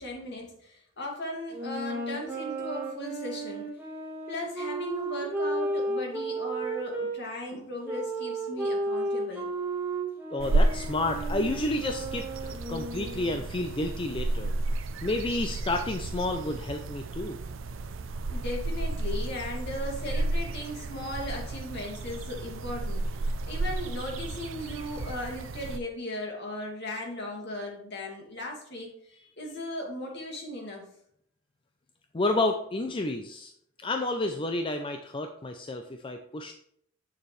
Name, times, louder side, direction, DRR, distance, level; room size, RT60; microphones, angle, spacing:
voice 1, 0.0-3.6 4.3-9.5 18.3-30.9, left 1 dB, 55° left, 0 dB, 2.2 m, -37 dB
sound 1, 1.5-7.1 7.8-13.4, right 2 dB, 10° right, 1.6 m, -33 dB
voice 2, 10.3-14.6 15.0-17.4 32.1-33.5 33.8-36.5, left 2 dB, 25° left, 5 dB, 0.5 m, -30 dB
sound 2, 10.4-25.8, right 2 dB, 70° right, 0.5 m, -32 dB
8.2 x 7.0 x 3.2 m, 0.69 s
head